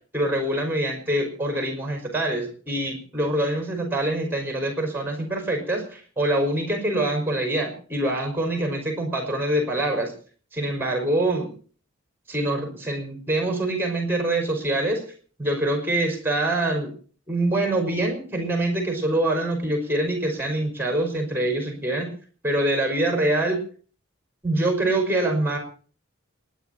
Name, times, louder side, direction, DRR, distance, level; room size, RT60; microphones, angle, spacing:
voice 1, 0.1-10.1 10.5-11.5 12.3-15.0 15.4-16.9 17.3-22.1 22.4-23.6 24.4-25.6, right 1 dB, 10° right, 4 dB, 5.6 m, -25 dB
28.5 x 11.0 x 4.3 m, 0.42 s
head